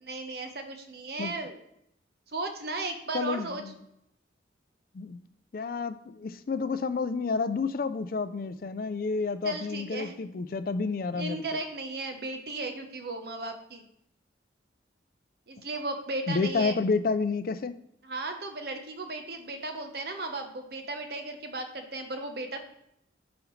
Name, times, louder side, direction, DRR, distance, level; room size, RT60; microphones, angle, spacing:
voice 1, 0.0-1.6 2.3-3.6 9.4-10.1 11.1-13.9 15.5-16.8 18.0-22.6, right 2 dB, 55° right, 5 dB, 1.0 m, -35 dB
voice 2, 3.1-3.8 4.9-5.2 5.5-11.4 16.3-17.8, left 4 dB, 50° left, 12 dB, 0.4 m, -30 dB
9.7 x 5.1 x 3.2 m, 0.78 s
head